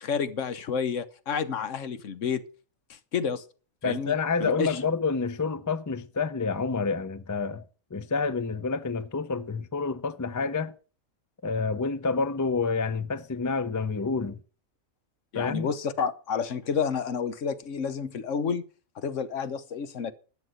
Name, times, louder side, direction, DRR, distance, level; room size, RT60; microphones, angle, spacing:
voice 1, 0.0-2.4 2.9-3.4 3.8-4.1 4.4-4.8 15.3-18.6 19.0-20.1, left 6 dB, 65° left, 1.3 m, -30 dB
voice 2, 3.8-7.6 7.9-10.7 11.4-14.4 15.3-15.7, left 4 dB, 25° left, 0.3 m, -28 dB
12.0 x 7.2 x 7.9 m
omnidirectional pair, 1.4 m